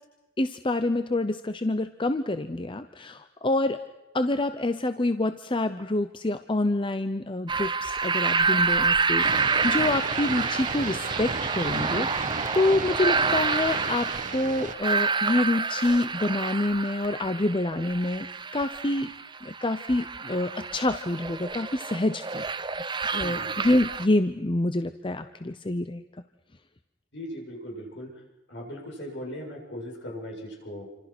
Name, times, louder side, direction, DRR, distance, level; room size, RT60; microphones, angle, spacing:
voice 1, 0.4-3.8 4.1-19.1 19.4-22.4 23.1-26.0, left 2 dB, 25° left, 10 dB, 0.8 m, -27 dB
sound 1, 7.5-24.1, right 4 dB, 25° right, 0.8 m, -28 dB
sound 2, 9.2-14.7, right 4 dB, 45° right, 1.2 m, -34 dB
voice 2, 23.0-23.5 27.1-28.2 28.5-30.8, equal, 65° left, 0 dB, 7.9 m, -39 dB
28.5 x 26.0 x 6.2 m, 1.1 s
head